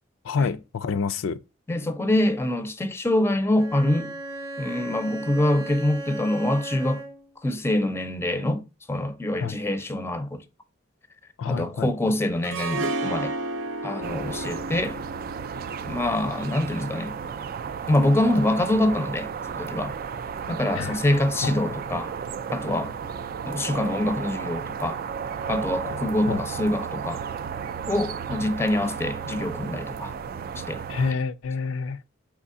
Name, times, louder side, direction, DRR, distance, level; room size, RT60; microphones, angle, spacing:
voice 1, 0.2-1.4 9.4-9.6 11.4-11.9 20.7-21.0 21.4-21.5 26.3-26.4 30.9-32.0, left 5 dB, 85° left, 0.4 m, -27 dB
voice 2, 1.7-4.1 4.6-7.0 7.4-8.6 8.9-10.4 11.5-13.3 13.8-15.0 15.8-17.2 17.9-19.9 20.5-22.1 22.5-22.9 23.5-25.0 25.5-27.2 27.9-30.1 30.6-30.8, left 1 dB, 15° left, 0.5 m, -25 dB
Bowed string instrument, 3.6-7.4, right 2 dB, 15° right, 0.8 m, -36 dB
Harp, 12.4-17.5, right 2 dB, 75° right, 0.7 m, -33 dB
sound 1, 14.0-31.1, right 7 dB, 50° right, 0.3 m, -34 dB
4.8 x 3.5 x 2.5 m
head